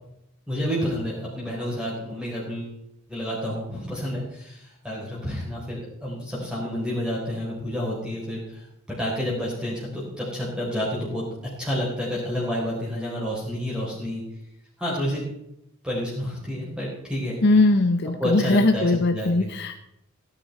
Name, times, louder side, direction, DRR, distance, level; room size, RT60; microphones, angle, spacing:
voice 1, 0.5-2.7 3.1-8.6 8.9-11.2 11.6-14.2 14.8-15.2 15.8-17.4 18.2-18.9 19.1-19.5, equal, 5° right, -6 dB, 4.0 m, -29 dB
voice 2, 17.4-19.8, left 2 dB, 50° left, 7 dB, 0.8 m, -20 dB
17.5 x 9.9 x 4.2 m, 0.78 s
head